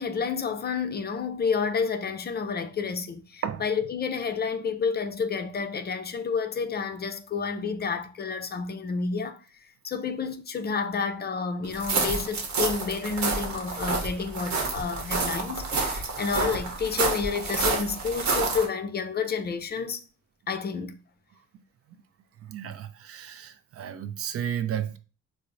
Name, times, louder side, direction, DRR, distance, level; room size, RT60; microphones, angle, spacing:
voice 1, 0.0-20.0 20.5-21.0, left 5 dB, 35° left, 0.4 m, -30 dB
sound 1, 11.7-18.7, right 3 dB, 70° right, 0.9 m, -29 dB
voice 2, 22.4-25.0, right 9 dB, 50° right, 0.4 m, -33 dB
4.3 x 2.0 x 2.5 m
cardioid pair, 90°, 30 cm